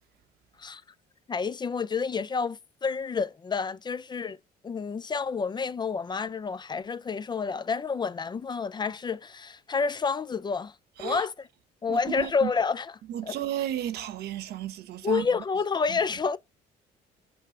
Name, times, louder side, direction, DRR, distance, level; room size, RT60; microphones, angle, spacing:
voice 1, 1.3-4.4 4.6-10.7 11.0-11.5 11.8-13.4 15.0-16.4, left 5 dB, 25° left, 0.5 m, -29 dB
voice 2, 11.9-12.5 13.1-15.3, right 11 dB, 70° right, 0.9 m, -33 dB
7.5 x 3.4 x 4.5 m
cardioid pair, 110°, 17 cm